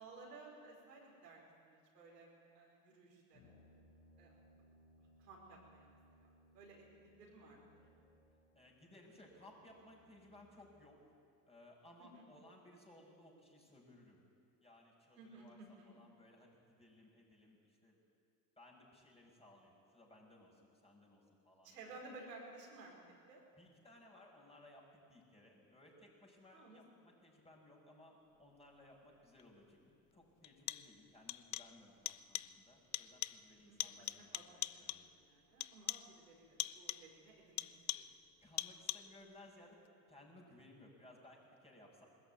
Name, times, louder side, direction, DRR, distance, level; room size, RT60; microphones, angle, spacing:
voice 1, 0.0-3.6 4.2-4.3 5.2-6.0 6.2-7.8 12.0-12.2 15.2-16.0 21.6-23.0 23.3-23.4 26.5-26.8 33.6-37.7 37.9-38.0, right 3 dB, 90° right, -2 dB, 5.1 m, -57 dB
Brass instrument, 3.3-10.8, equal, 65° left, 3.8 m, -67 dB
voice 2, 8.5-11.1 11.5-14.2 14.6-15.6 15.9-18.0 18.6-22.0 23.5-35.0 38.4-39.8 40.1-42.1, left 1 dB, 10° left, -1 dB, 6.0 m, -61 dB
sound 1, 29.4-29.5 30.4-31.0 31.3-31.8 32.1-32.6 32.9-33.5 33.8-35.2 35.6-36.2 36.6-37.2 37.6-38.2 38.6-39.2, left 15 dB, 40° left, 0.6 m, -43 dB
20.5 x 14.0 x 9.5 m, 2.3 s
hypercardioid pair, 80°, 47 cm